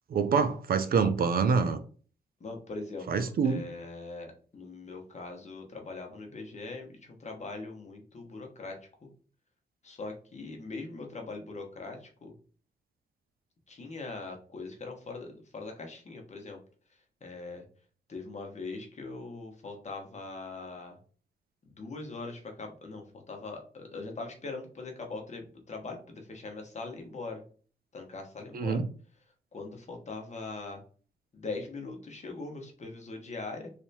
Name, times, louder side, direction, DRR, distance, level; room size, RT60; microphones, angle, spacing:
voice 1, 0.1-1.8 3.1-3.6 28.5-28.8, right 5 dB, 55° right, 0.5 m, -26 dB
voice 2, 2.4-9.1 9.8-12.3 13.7-16.6 17.2-17.6 18.1-21.0 21.6-27.4 27.9-28.8 29.5-30.8 31.3-33.7, left 3 dB, 40° left, 1.2 m, -41 dB
3.4 x 2.7 x 2.8 m
cardioid pair, 70°, 19 cm